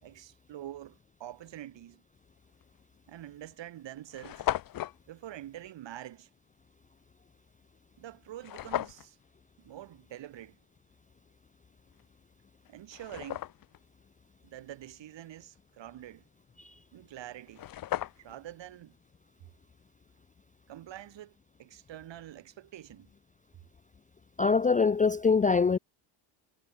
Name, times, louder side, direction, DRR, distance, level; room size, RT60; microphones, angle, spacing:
voice 1, 0.0-2.0 3.1-4.5 5.1-6.3 8.0-9.2 9.6-10.6 12.7-13.5 14.4-16.2 16.9-17.7 18.2-19.0 20.7-23.1, right 12 dB, 60° right, 4.3 m, -46 dB
sound 1, 2.6-2.8 3.5-3.6 3.8-3.9 4.1-5.0 8.4-9.1 12.0-12.1 12.6-13.8 17.1-17.2 17.5-18.5, left 13 dB, 45° left, 0.8 m, -35 dB
voice 2, 24.4-25.8, left 5 dB, 15° left, 0.4 m, -24 dB
cardioid pair, 175°, 49 cm